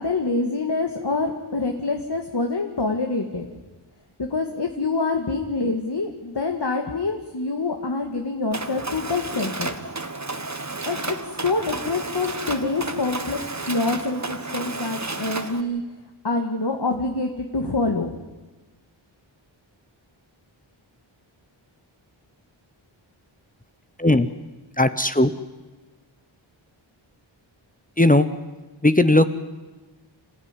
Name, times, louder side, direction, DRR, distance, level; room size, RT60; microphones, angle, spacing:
voice 1, 0.0-3.5 4.2-9.7 10.9-11.2 11.4-13.4 13.7-15.8 16.2-18.1, left 3 dB, 55° left, 3 dB, 1.9 m, -26 dB
Mechanisms, 8.5-15.6, right 3 dB, 35° right, 1.5 m, -32 dB
voice 2, 24.8-25.3 28.0-28.3 28.8-29.3, left 1 dB, 15° left, 11 dB, 1.0 m, -17 dB
27.0 x 14.5 x 9.8 m, 1.2 s
wide cardioid pair, 60°, 49 cm